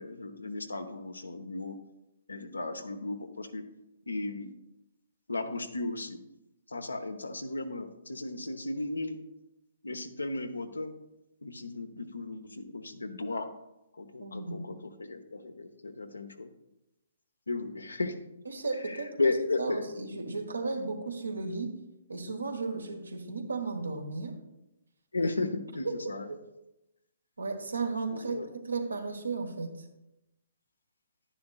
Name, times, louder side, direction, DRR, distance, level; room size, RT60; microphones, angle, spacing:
voice 1, 0.0-1.8 2.3-3.6 4.1-4.5 5.3-6.2 6.7-9.2 9.8-10.9 11.4-13.5 13.9-16.5 17.5-18.2 18.8-19.8 25.1-26.3 28.1-28.5, left 2 dB, 85° left, 7 dB, 0.9 m, -35 dB
voice 2, 14.2-14.7 18.5-21.8 22.1-24.4 25.2-25.3 25.8-26.4 27.4-28.4 28.6-29.8, right 3 dB, 85° right, 4 dB, 1.4 m, -35 dB
10.5 x 10.0 x 2.4 m, 0.92 s
figure-of-eight pair, 130°, 0 cm